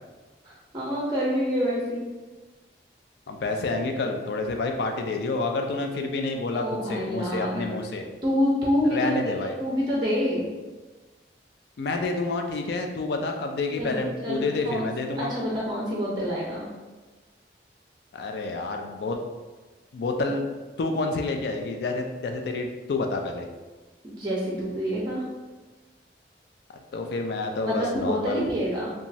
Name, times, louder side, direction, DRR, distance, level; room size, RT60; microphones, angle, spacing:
voice 1, 0.4-2.0 6.5-7.8 8.2-9.3 9.6-10.5 13.8-14.9 15.2-16.7 24.0-25.3 27.6-28.9, equal, 25° right, -5 dB, 0.5 m, -27 dB
voice 2, 3.3-8.0 8.9-9.5 11.8-15.3 18.1-19.2 19.9-20.5 20.8-23.5 26.9-28.5, left 3 dB, 65° left, 4 dB, 0.3 m, -28 dB
3.0 x 2.3 x 2.6 m, 1.3 s
head